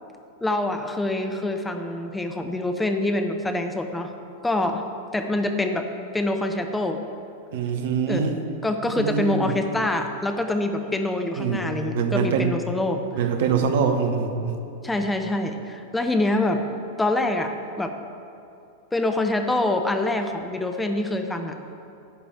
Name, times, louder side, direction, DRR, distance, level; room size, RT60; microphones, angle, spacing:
voice 1, 0.4-4.1 4.4-4.8 5.1-5.9 6.1-7.0 8.1-8.3 8.6-13.0 14.8-16.6 17.0-17.9 18.9-21.7, left 2 dB, 10° left, 5 dB, 0.7 m, -25 dB
voice 2, 7.5-8.3 9.0-9.5 11.4-12.5 13.1-14.6, right 6 dB, 55° right, 6 dB, 1.0 m, -24 dB
11.5 x 5.1 x 8.6 m, 2.8 s
figure-of-eight pair, 90°, 0 cm